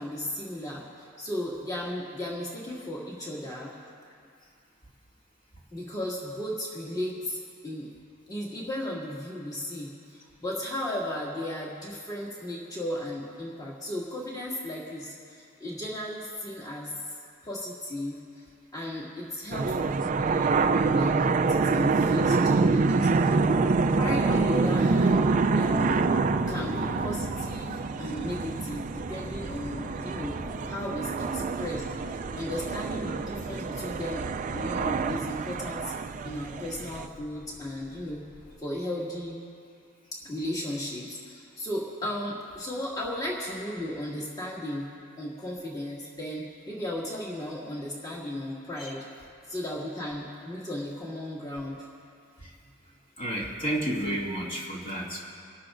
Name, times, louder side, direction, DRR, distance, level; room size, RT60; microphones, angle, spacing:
voice 1, 0.0-3.7 5.7-7.9 8.3-16.9 17.4-18.4 18.7-23.3 24.0-25.3 25.5-26.0 26.5-30.4 30.7-31.8 32.4-34.3 34.5-35.9 36.2-38.3 38.6-39.4 40.2-44.9 45.2-49.0 49.5-51.8, left 1 dB, 20° left, -6 dB, 2.2 m, -35 dB
sound 1, 19.5-37.1, right 4 dB, 40° right, 0.4 m, -26 dB
sound 2, 25.3-38.5, left 1 dB, 85° left, 3.6 m, -43 dB
voice 2, 53.2-55.2, right 1 dB, 40° left, -5 dB, 2.3 m, -31 dB
27.5 x 12.5 x 2.6 m, 2.4 s
head